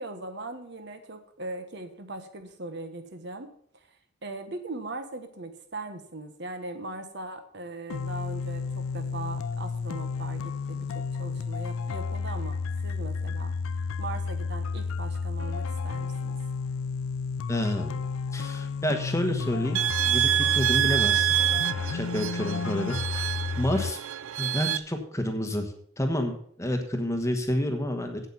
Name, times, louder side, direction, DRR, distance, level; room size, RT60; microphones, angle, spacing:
voice 1, 0.0-3.5 3.7-3.9 4.2-12.6 12.8-13.5 14.0-16.3, right 2 dB, 55° right, 7 dB, 1.3 m, -39 dB
sound 1, 7.9-23.9, left 4 dB, 80° left, 0.4 m, -32 dB
voice 2, 17.5-17.9 18.3-21.3 21.9-23.3 23.6-24.0 24.4-28.2, left 1 dB, 15° left, 5 dB, 1.2 m, -29 dB
sound 2, 19.7-24.8, right 12 dB, 75° right, 0.5 m, -27 dB
8.2 x 8.1 x 7.1 m, 0.62 s
head